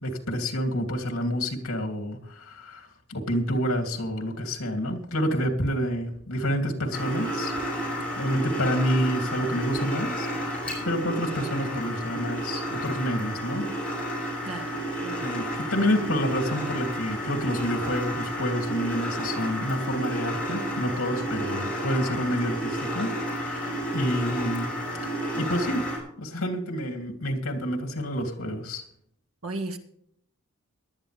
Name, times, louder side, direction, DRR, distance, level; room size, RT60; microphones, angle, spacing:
voice 1, 0.0-7.5 8.2-13.8 14.5-14.8 15.2-24.7 25.0-25.9 26.2-28.8, equal, 80° left, 3 dB, 2.9 m, -28 dB
sound 1, 6.9-26.0, equal, 5° left, 6.1 m, -31 dB
voice 2, 29.4-29.8, right 2 dB, 85° right, 6 dB, 1.8 m, -34 dB
18.0 x 12.0 x 3.4 m, 0.67 s
head